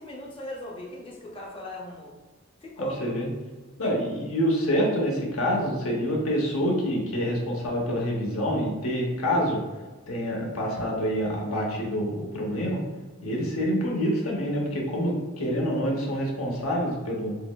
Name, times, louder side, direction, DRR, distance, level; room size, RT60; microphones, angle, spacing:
voice 1, 0.0-2.1 2.6-3.0 3.8-3.9, equal, 25° left, -3 dB, 0.5 m, -38 dB
voice 2, 2.8-3.3 3.8-9.6 10.1-12.8 13.2-17.4, equal, 85° left, -1 dB, 0.9 m, -27 dB
5.5 x 2.1 x 2.2 m, 1.3 s
head